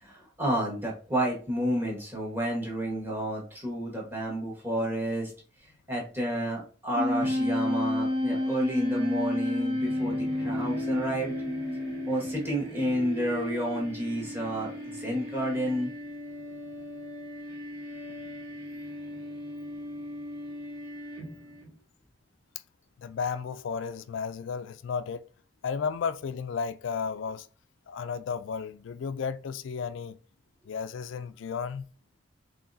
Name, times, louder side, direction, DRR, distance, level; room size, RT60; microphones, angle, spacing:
voice 1, 0.0-5.3 5.9-11.3 12.0-15.9, equal, 10° right, 1.3 m, -30 dB
Wind instrument woodwind instrument, 7.0-12.6, left 1 dB, 70° right, 2.0 m, -29 dB
sound 1, 7.2-21.7, right 1 dB, 30° right, 1.5 m, -41 dB
voice 2, 23.0-25.3 25.6-27.5 27.9-30.2 30.7-31.9, left 6 dB, 75° left, 0.3 m, -33 dB
4.7 x 3.1 x 2.6 m
head